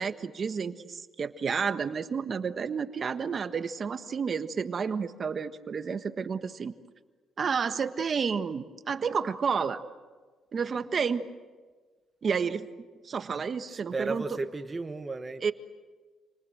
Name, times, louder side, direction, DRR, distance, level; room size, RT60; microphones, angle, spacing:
voice 1, 0.0-6.7 7.4-9.8 10.5-11.2 12.2-12.7 13.0-14.2 15.4-15.5, right 6 dB, 45° right, 1.5 m, -30 dB
voice 2, 13.7-15.5, right 3 dB, 25° right, 1.3 m, -34 dB
28.5 x 26.0 x 7.9 m
cardioid pair, 90°, 0 cm